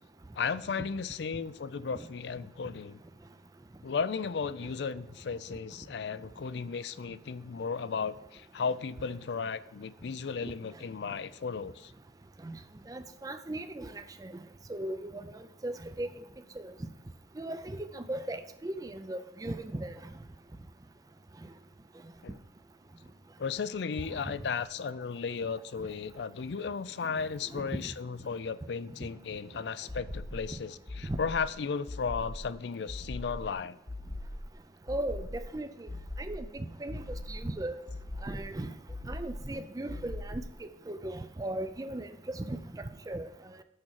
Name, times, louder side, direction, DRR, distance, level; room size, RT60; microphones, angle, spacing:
voice 1, 0.4-3.0 3.8-11.9 22.2-22.4 23.4-33.8, left 5 dB, 70° left, 16 dB, 0.4 m, -35 dB
voice 2, 12.9-14.3 14.7-15.2 15.6-16.1 16.6-16.7 17.4-19.9 27.5-27.7 31.1-31.2 34.9-35.9 36.2-37.7 38.2-38.7 39.0-43.3, right 1 dB, 20° right, 10 dB, 0.4 m, -37 dB
sound 1, 29.9-30.5 30.9-31.5 31.9-32.5 32.9-33.5 33.9-34.5 34.9-35.5 35.9-36.5 36.9-37.5 37.9-38.5 38.9-39.5 39.9-40.5, left 1 dB, 30° left, 0.9 m, -40 dB
6.4 x 6.0 x 7.3 m, 0.94 s
head